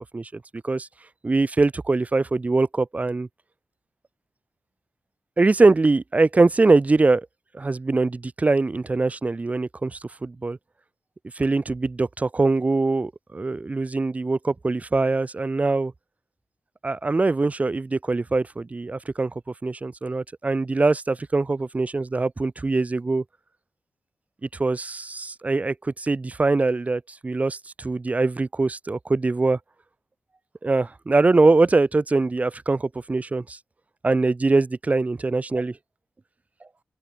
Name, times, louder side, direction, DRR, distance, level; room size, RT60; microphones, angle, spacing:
voice 1, 0.1-0.9 1.2-3.3 5.4-7.3 7.5-10.6 11.4-15.9 16.8-19.3 19.6-23.2 24.5-29.6 30.6-33.6 34.0-35.8, right 3 dB, 35° right, 2.2 m, -22 dB
open air
cardioid pair, 65°, 4 cm